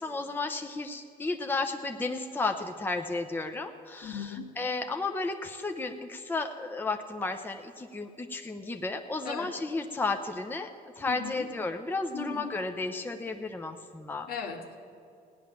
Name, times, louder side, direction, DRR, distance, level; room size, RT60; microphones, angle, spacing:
voice 1, 0.0-10.7 11.0-14.3, left 3 dB, 10° left, 5 dB, 0.8 m, -33 dB
voice 2, 4.0-4.5 9.3-9.5 11.1-11.4 12.1-12.5 14.3-14.8, left 7 dB, 65° left, 3 dB, 1.9 m, -37 dB
17.0 x 10.0 x 7.3 m, 2.5 s
cardioid pair, 110°, 17 cm